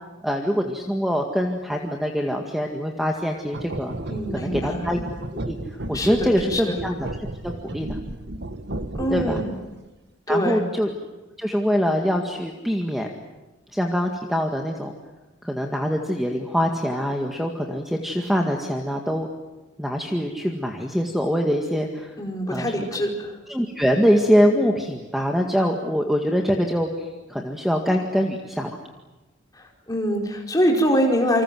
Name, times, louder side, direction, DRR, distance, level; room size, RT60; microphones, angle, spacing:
voice 1, 0.2-4.0 4.3-5.0 5.3-5.6 5.9-7.1 7.4-8.0 9.1-9.4 10.3-10.9 11.4-13.1 13.7-14.9 15.4-19.3 19.8-22.1 22.5-22.9 23.5-28.8, equal, ahead, 2 dB, 1.9 m, -24 dB
sound 1, 3.5-9.7, right 1 dB, 60° right, 1.5 m, -33 dB
voice 2, 4.1-4.8 5.9-6.8 9.0-9.5 10.3-10.6 22.2-23.4 29.5-31.4, equal, 20° left, 1 dB, 4.8 m, -24 dB
29.0 x 26.0 x 7.7 m, 1.1 s
head